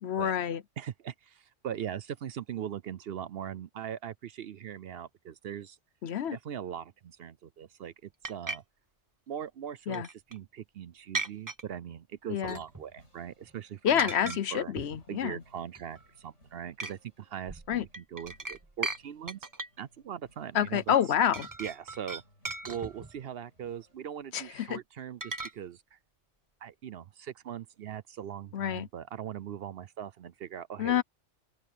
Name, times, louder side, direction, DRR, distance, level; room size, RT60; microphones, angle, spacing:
voice 1, 0.0-0.6 6.0-6.4 9.9-10.1 12.3-12.6 13.8-15.4 17.7-17.8 20.5-21.5 24.3-24.8 28.5-28.9 30.8-31.0, left 9 dB, 65° left, 1.0 m, -28 dB
voice 2, 0.8-5.8 6.3-8.6 9.3-14.7 15.1-19.4 19.8-20.9 21.6-22.2 22.7-26.0 26.6-31.0, right 9 dB, 60° right, 0.8 m, -40 dB
sound 1, 8.2-8.6 9.9-10.4 11.1-11.6 12.4-12.9 13.2-13.5 14.0-14.4 14.8-15.0 15.6-16.1 16.8-16.9 17.5-19.0 19.3-19.8 20.9-21.0 21.3-23.2 25.2-25.5, right 3 dB, 20° right, 0.6 m, -37 dB
sound 2, 12.7-24.0, left 1 dB, 80° left, 7.7 m, -64 dB
open air
omnidirectional pair, 1.2 m